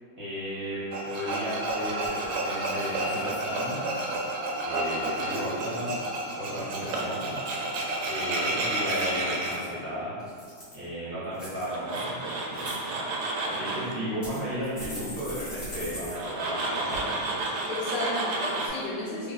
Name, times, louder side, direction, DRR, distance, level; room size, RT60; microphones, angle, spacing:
voice 1, 0.2-3.9 4.6-7.7 8.0-10.3 10.7-17.4, equal, 40° right, -11 dB, 1.0 m, -34 dB
Tools, 0.9-9.5 11.7-13.9 16.2-18.7, right 2 dB, 75° right, 1.0 m, -31 dB
sound 1, 2.0-2.4 2.8-3.4 3.9-4.2 8.7-9.7 10.2-10.8 11.3-12.0 12.4-12.8 13.5-13.6 14.2-16.2 16.4-16.5 16.9-17.0, left 1 dB, 30° left, 1.1 m, -42 dB
voice 2, 5.1-5.8 6.4-6.6 17.7-19.3, left 2 dB, 90° left, -6 dB, 1.5 m, -34 dB
3.3 x 2.3 x 4.0 m, 2.1 s
omnidirectional pair, 1.9 m